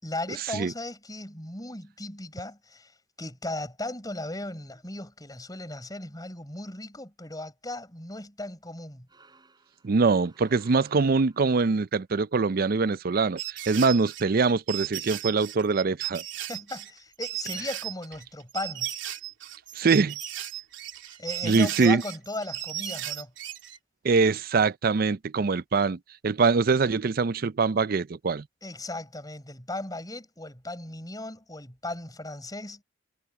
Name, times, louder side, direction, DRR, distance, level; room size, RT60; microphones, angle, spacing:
voice 1, 0.0-2.9 3.2-9.1 16.3-18.9 21.2-23.3 28.6-32.8, left 2 dB, 20° left, 7.0 m, -37 dB
sound 1, 9.1-11.7, right 3 dB, 20° right, 7.9 m, -59 dB
voice 2, 9.8-16.2 19.8-20.2 21.4-22.0 24.0-28.4, right 4 dB, 50° right, 0.5 m, -23 dB
sound 2, 13.4-23.8, right 14 dB, 80° right, 3.2 m, -36 dB
head